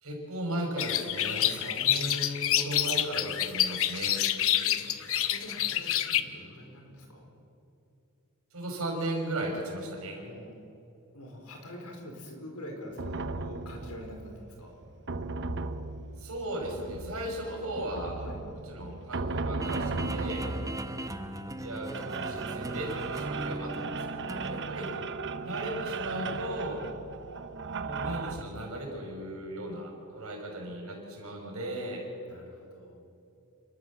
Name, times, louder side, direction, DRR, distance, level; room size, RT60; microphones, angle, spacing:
voice 1, 0.0-4.1 8.5-10.2 16.2-18.2 18.7-20.4 21.6-24.9 25.4-26.8 27.8-32.0, right 1 dB, 70° right, 0 dB, 5.7 m, -36 dB
sound 1, 0.8-6.2, left 11 dB, 65° left, 0.9 m, -28 dB
voice 2, 1.3-1.6 4.0-7.3 10.1-10.5 11.1-14.7 18.2-18.4 20.4-20.6 24.5-25.5 26.8-26.9 32.3-33.0, equal, 90° left, 2 dB, 4.3 m, -46 dB
sound 2, 13.0-28.4, right 3 dB, 55° right, 0.8 m, -36 dB
sound 3, 19.6-24.6, right 1 dB, 15° right, 0.9 m, -38 dB
29.0 x 13.0 x 7.4 m, 2.8 s
head